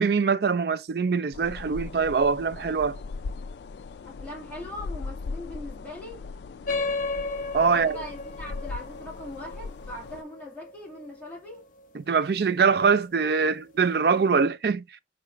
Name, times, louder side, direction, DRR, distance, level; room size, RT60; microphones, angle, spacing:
voice 1, 0.0-3.0 7.5-8.0 11.9-14.8, right 5 dB, 60° right, 0.4 m, -23 dB
sound 1, 1.3-10.2, left 4 dB, 70° left, 0.4 m, -39 dB
voice 2, 4.0-6.3 7.7-11.7, left 1 dB, 10° left, 2.0 m, -40 dB
sound 2, 6.7-11.6, left 3 dB, 45° left, 0.8 m, -34 dB
4.8 x 4.6 x 2.4 m
head